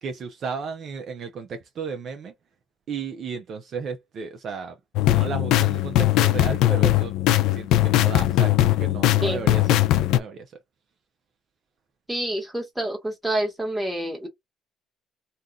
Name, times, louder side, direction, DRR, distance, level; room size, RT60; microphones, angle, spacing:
voice 1, 0.0-2.3 2.9-4.8 5.1-7.1 7.5-9.8 10.1-10.5, right 5 dB, 45° right, 0.6 m, -34 dB
sound 1, 5.0-10.2, left 14 dB, 80° left, 0.4 m, -20 dB
voice 2, 12.1-14.3, right 1 dB, 5° right, 1.4 m, -27 dB
2.6 x 2.4 x 3.5 m
cardioid pair, 145°, 0 cm